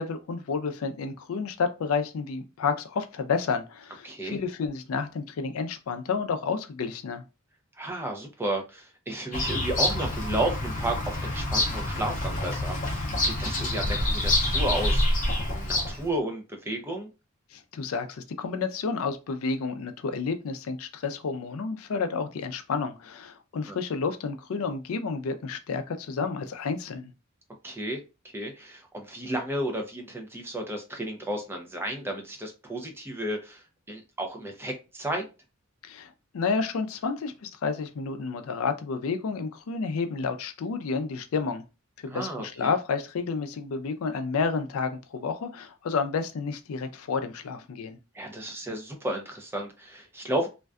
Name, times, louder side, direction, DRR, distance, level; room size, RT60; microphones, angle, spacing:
voice 1, 0.0-7.2 17.5-27.1 35.8-41.6 42.0-48.0, left 5 dB, 80° left, 0.4 m, -30 dB
voice 2, 4.0-4.4 7.8-17.1 23.7-23.8 27.6-28.0 28.3-35.2 42.1-42.7 48.1-50.5, right 1 dB, 10° right, 0.5 m, -33 dB
Bird vocalization bird call bird song, 9.3-16.1, left 1 dB, 40° left, 0.6 m, -27 dB
2.5 x 2.2 x 2.3 m
head